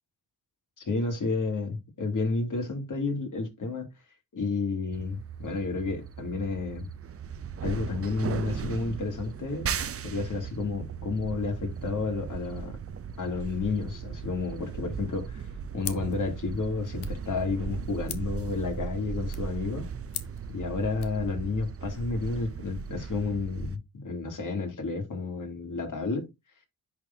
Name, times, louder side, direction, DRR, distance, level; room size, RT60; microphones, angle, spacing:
voice 1, 0.8-3.9 4.3-6.9 7.6-9.7 10.0-12.7 13.2-15.4 15.7-19.9 20.5-26.3, left 4 dB, 50° left, 2.9 m, -31 dB
sound 1, 4.9-23.8, right 6 dB, 35° right, 0.6 m, -37 dB
sound 2, 15.8-21.2, left 11 dB, 80° left, 0.9 m, -44 dB
10.5 x 4.3 x 2.8 m
cardioid pair, 85°, 40 cm